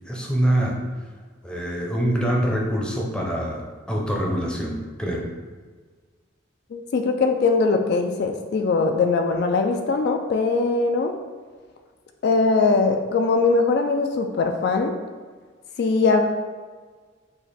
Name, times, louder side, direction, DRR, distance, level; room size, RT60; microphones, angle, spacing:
voice 1, 0.1-0.8 1.4-5.2, right 1 dB, 5° left, -2 dB, 0.6 m, -25 dB
voice 2, 6.7-11.1 12.2-14.9 15.8-16.2, left 3 dB, 55° left, 4 dB, 0.3 m, -21 dB
5.0 x 2.5 x 4.1 m, 1.5 s
head